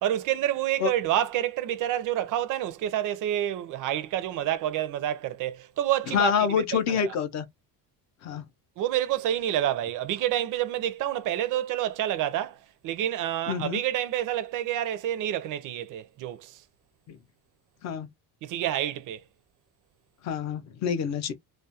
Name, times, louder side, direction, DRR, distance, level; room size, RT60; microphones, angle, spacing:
voice 1, 0.0-6.3 6.7-7.2 8.8-16.6 18.4-19.2, right 12 dB, 50° right, 0.4 m, -28 dB
voice 2, 6.1-7.5 8.2-8.4 13.5-13.8 17.1-17.2 17.8-18.1 20.2-21.3, left 7 dB, 40° left, 0.5 m, -27 dB
2.4 x 2.1 x 2.7 m
cardioid pair, 180°, 42 cm